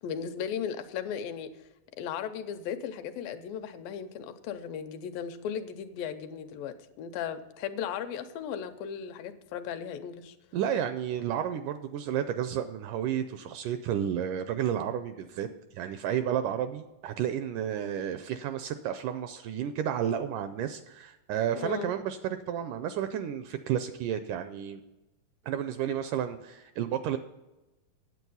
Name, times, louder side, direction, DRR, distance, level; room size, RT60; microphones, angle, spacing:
voice 1, 0.0-1.7 2.0-10.4 21.6-21.9, left 8 dB, 85° left, 8 dB, 2.4 m, -36 dB
voice 2, 10.5-15.5 15.8-24.8 25.5-27.2, right 9 dB, 80° right, 10 dB, 1.9 m, -31 dB
9.3 x 8.4 x 5.5 m, 1.0 s
omnidirectional pair, 4.1 m